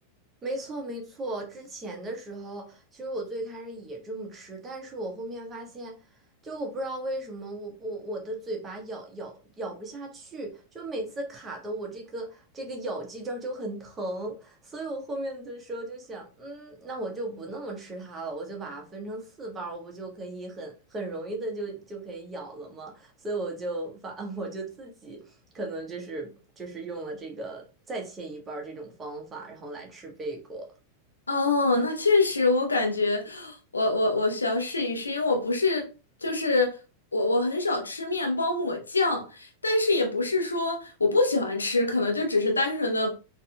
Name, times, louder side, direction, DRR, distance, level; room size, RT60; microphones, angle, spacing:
voice 1, 0.4-5.9 6.4-30.7, right 2 dB, 20° right, 1.0 m, -36 dB
voice 2, 31.3-35.9 36.2-36.8 37.1-43.2, left 2 dB, 75° left, 0.7 m, -25 dB
4.1 x 2.7 x 2.3 m
figure-of-eight pair, 90°, 0 cm